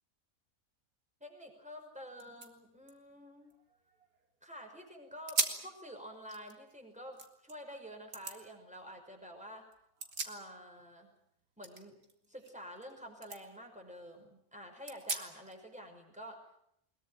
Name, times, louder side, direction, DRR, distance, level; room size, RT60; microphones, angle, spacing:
voice 1, 1.2-3.5 4.4-9.7 10.2-11.1 11.6-12.0 12.3-16.4, equal, 5° right, 3 dB, 5.7 m, -49 dB
sound 1, 1.8-1.9 2.1-4.4 4.8-4.9 5.3-5.7 6.1-7.6 8.1-8.4 9.7-10.9 11.1-12.9 13.2-13.4 13.9-14.0 14.9-15.6, right 4 dB, 80° right, 2.8 m, -40 dB
22.0 x 21.5 x 9.1 m, 0.73 s
omnidirectional pair, 1.5 m